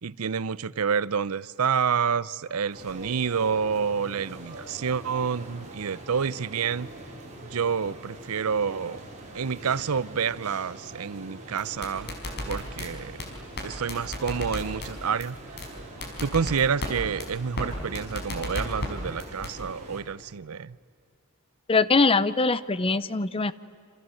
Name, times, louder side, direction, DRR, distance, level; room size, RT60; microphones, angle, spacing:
voice 1, 0.0-6.9 7.4-9.0 9.3-12.1 12.5-13.2 13.6-15.4 16.2-20.8, right 6 dB, 75° right, 0.6 m, -28 dB
sound 1, 2.7-20.0, right 1 dB, 35° right, 5.2 m, -44 dB
sound 2, 11.6-12.9 13.2-13.3 13.6-13.7 13.9-14.9 15.2-15.3 15.6-15.7 16.0-16.9 17.2-17.3 17.6-17.7 17.9-18.9 19.2-19.5, left 1 dB, 50° left, 5.0 m, -32 dB
voice 2, 21.7-23.5, left 3 dB, 25° left, 0.7 m, -22 dB
28.5 x 27.0 x 7.7 m
head